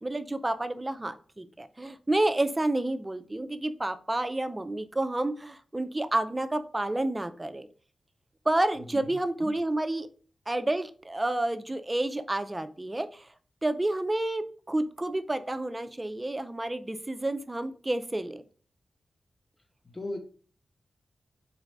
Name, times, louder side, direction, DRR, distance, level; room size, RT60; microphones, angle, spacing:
voice 1, 0.0-7.7 8.5-10.1 10.5-13.3 13.6-18.4, right 1 dB, 25° right, 10 dB, 0.4 m, -30 dB
voice 2, 8.9-9.5 19.9-20.2, left 2 dB, 30° left, 4 dB, 1.0 m, -38 dB
4.0 x 2.4 x 3.2 m, 0.41 s
cardioid pair, 50°, 0 cm